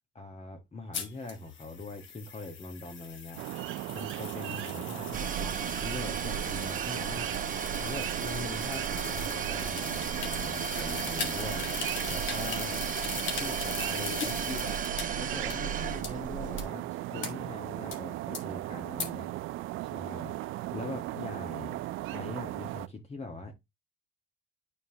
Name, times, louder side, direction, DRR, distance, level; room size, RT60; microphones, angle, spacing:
voice 1, 0.1-3.4 3.9-7.3 7.8-12.8 13.3-14.8 15.1-19.3 19.8-20.3 20.7-21.8 22.1-23.5, left 3 dB, 30° left, 1.5 m, -42 dB
sound 1, 0.9-15.0 15.5-15.6 16.0-16.1 16.6-16.7 17.2-17.3 17.9-18.0 18.3-18.4 19.0-19.1, left 6 dB, 70° left, 1.9 m, -40 dB
sound 2, 3.4-22.9, right 16 dB, 85° right, 0.4 m, -37 dB
sound 3, 5.1-16.6, right 6 dB, 40° right, 0.9 m, -35 dB
9.4 x 4.5 x 2.9 m
cardioid pair, 90°, 20 cm